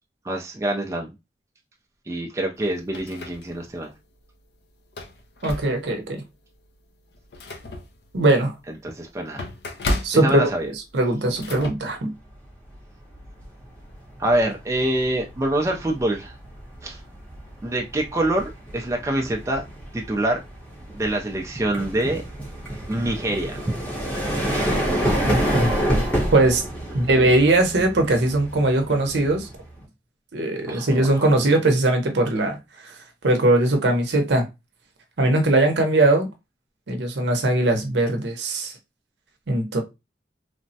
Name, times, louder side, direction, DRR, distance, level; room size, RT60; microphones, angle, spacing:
voice 1, 0.2-1.1 2.1-3.9 8.7-9.5 10.1-10.7 14.2-16.4 16.8-17.0 17.6-19.6 19.9-20.4 20.9-22.2 22.9-23.7 24.5-24.7 30.7-31.6, right 1 dB, 15° right, 0.3 m, -26 dB
sound 1, 2.6-3.9 4.3-4.4 4.8-6.1 6.5-6.7 7.0-11.7, left 1 dB, 60° left, 0.5 m, -33 dB
voice 2, 5.4-6.2 8.1-8.5 10.0-10.5 10.9-12.1 25.2-25.7 26.3-26.6 26.9-29.5 30.3-32.6 32.8-32.9 33.2-34.4 35.2-36.3 36.9-38.7 39.5-39.8, right 2 dB, 70° right, 0.7 m, -20 dB
sound 2, 12.4-12.7 13.1-29.8, right 1 dB, 5° left, 0.7 m, -29 dB
3.3 x 2.0 x 2.6 m
head